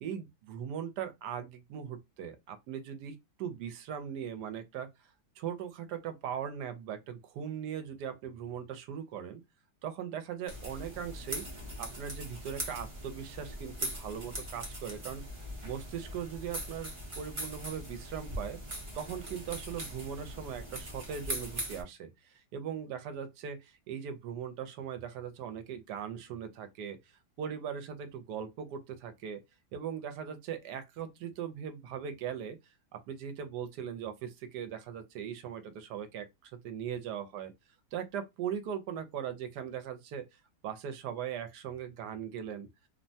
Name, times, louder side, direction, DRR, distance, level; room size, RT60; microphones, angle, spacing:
voice 1, 0.0-4.9 5.4-9.4 9.8-11.4 11.8-15.2 15.6-18.6 18.9-27.0 27.4-29.4 29.7-32.6 32.9-37.5 37.9-40.2 40.6-42.7, right 8 dB, 80° right, 1.2 m, -39 dB
sound 1, 10.5-21.8, equal, 25° right, 0.7 m, -41 dB
3.2 x 2.1 x 2.6 m
omnidirectional pair, 1.8 m